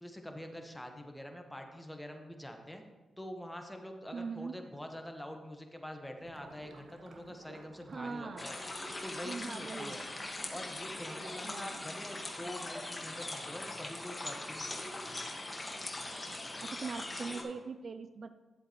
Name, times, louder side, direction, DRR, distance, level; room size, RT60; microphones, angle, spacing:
voice 1, 0.0-2.8 3.2-8.6 9.0-10.0 10.5-15.1, left 1 dB, 10° left, 4 dB, 1.3 m, -45 dB
voice 2, 4.1-4.5 7.9-8.5 9.2-10.0 11.4-11.8 16.3-16.4 16.6-18.3, right 4 dB, 55° right, 11 dB, 0.4 m, -41 dB
Gurgling / Liquid, 6.2-13.9, right 3 dB, 75° right, 1.1 m, -55 dB
sound 1, 8.4-17.4, left 2 dB, 25° left, 1.6 m, -41 dB
11.0 x 7.6 x 3.1 m, 1.2 s
supercardioid pair, 50°, 0 cm